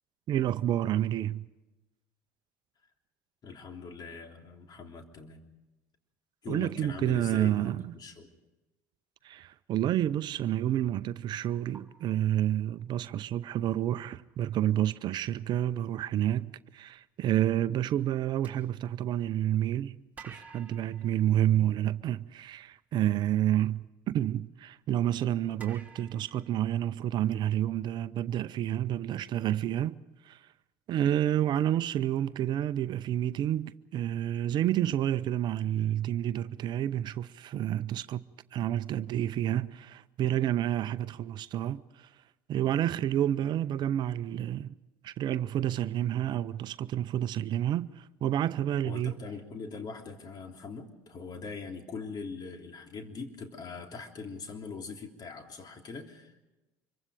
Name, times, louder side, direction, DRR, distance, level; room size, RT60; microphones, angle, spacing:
voice 1, 0.3-1.5 6.5-7.9 9.2-20.0 20.3-30.0 30.2-30.5 30.9-38.2 38.5-42.1 42.5-44.8 45.0-49.2, right 11 dB, 50° right, 0.7 m, -29 dB
voice 2, 3.4-5.4 6.4-8.3 48.8-56.3, left 5 dB, 45° left, 3.3 m, -42 dB
sound 1, 11.7-13.1 14.3-14.4 14.8-15.0 18.4-19.6 20.1-22.3 25.6-27.4, right 5 dB, 15° right, 3.5 m, -54 dB
25.5 x 23.5 x 5.0 m
hypercardioid pair, 70°, 9 cm